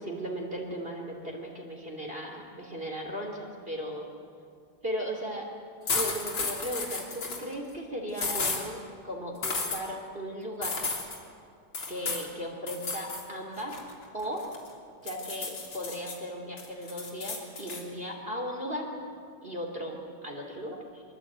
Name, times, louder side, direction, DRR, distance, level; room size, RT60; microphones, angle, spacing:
voice 1, 0.0-4.1 4.8-5.5 5.9-8.8 9.0-10.8 11.9-13.7 14.1-14.4 15.0-18.9 19.4-21.0, equal, 25° right, 1 dB, 3.4 m, -36 dB
sound 1, 5.9-7.4 8.2-8.6 9.4-9.8 10.6-11.2 11.7-12.3 12.7-13.2 13.6-14.7 15.1-16.1 16.6-17.8, left 4 dB, 75° left, 4.1 m, -33 dB
25.0 x 24.0 x 9.0 m, 2.3 s
omnidirectional pair, 2.2 m